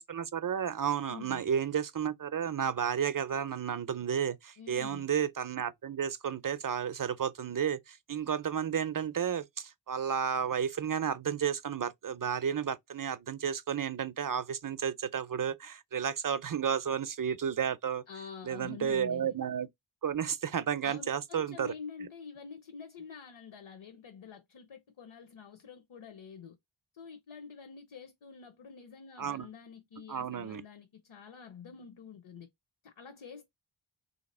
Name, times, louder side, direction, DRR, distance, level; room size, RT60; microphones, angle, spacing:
voice 1, 0.1-18.0 18.4-19.7 20.0-21.7 29.2-29.5 30.1-30.6, right 8 dB, 45° right, 0.5 m, -32 dB
voice 2, 1.1-1.4 4.6-5.1 18.1-19.3 20.8-26.6 26.9-32.5 32.8-33.5, left 6 dB, 75° left, 0.8 m, -47 dB
3.2 x 2.9 x 4.1 m
wide cardioid pair, 55°, 48 cm